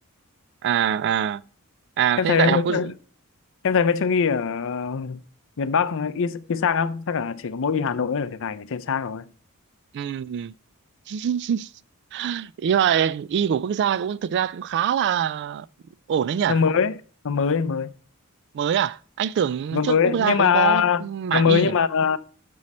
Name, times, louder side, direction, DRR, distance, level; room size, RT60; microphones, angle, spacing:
voice 1, 0.6-1.4 2.0-2.8 9.9-10.5 11.1-11.7 12.1-15.7 16.1-16.6 18.5-21.8, right 9 dB, 55° right, 0.3 m, -24 dB
voice 2, 2.2-2.9 3.6-5.2 5.6-9.2 16.5-17.0 17.2-17.9 19.7-21.0 21.3-22.2, left 6 dB, 65° left, 0.6 m, -22 dB
7.4 x 6.3 x 4.2 m
head